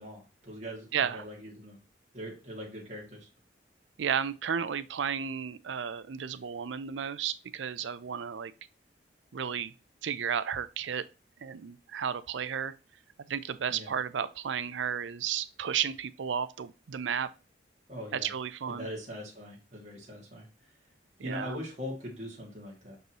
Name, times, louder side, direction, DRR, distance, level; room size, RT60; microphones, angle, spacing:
voice 1, 0.0-1.8 2.1-3.3 13.7-13.9 17.9-18.3 18.7-20.5 21.2-23.0, equal, 40° right, 2.2 m, -41 dB
voice 2, 0.9-1.2 4.0-8.5 9.3-9.7 10.0-11.0 11.4-12.7 13.3-17.3 18.1-18.9 21.2-21.6, right 7 dB, 80° right, 0.5 m, -33 dB
6.2 x 5.4 x 2.9 m
head